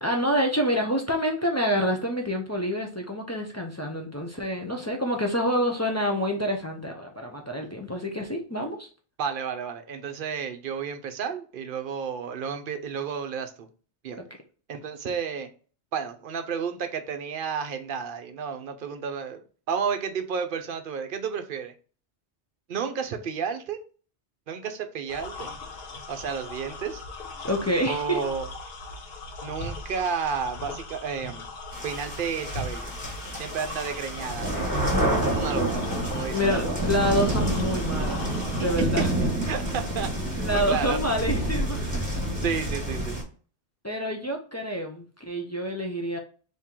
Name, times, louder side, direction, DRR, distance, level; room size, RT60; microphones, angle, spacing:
voice 1, 0.0-8.9 14.2-14.3 27.4-28.2 36.3-38.3 38.5-39.1 40.4-42.1 43.8-46.2, equal, 25° left, 1 dB, 0.4 m, -27 dB
voice 2, 9.2-13.7 14.0-14.2 14.7-15.5 15.9-19.4 19.7-21.7 22.7-23.8 24.5-25.5 26.1-27.0 27.9-28.5 29.4-31.5 31.8-32.9 33.4-35.8 36.1-36.6 38.4-38.5 39.5-41.0 42.4-43.3, right 6 dB, 55° right, 7 dB, 0.7 m, -32 dB
sound 1, 25.1-38.8, left 2 dB, 60° left, 1.0 m, -39 dB
sound 2, 31.7-43.2, right 1 dB, 15° right, 1.5 m, -28 dB
3.7 x 2.8 x 4.4 m, 0.39 s
omnidirectional pair, 1.2 m